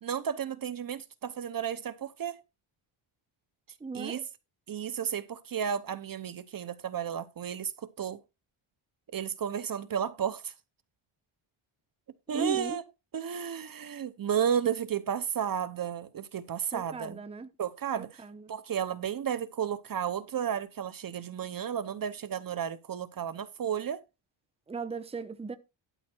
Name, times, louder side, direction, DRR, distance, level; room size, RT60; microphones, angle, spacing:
voice 1, 0.0-2.4 3.9-4.2 4.7-7.7 8.0-8.2 9.1-10.5 12.3-12.8 13.1-17.2 17.6-18.2 18.5-24.0, right 8 dB, 45° right, 0.8 m, -33 dB
voice 2, 3.8-4.3 12.3-12.8 16.7-17.5 18.0-18.5 24.7-25.6, right 4 dB, 10° right, 0.8 m, -37 dB
12.0 x 5.7 x 4.5 m
wide cardioid pair, 150°, 50 cm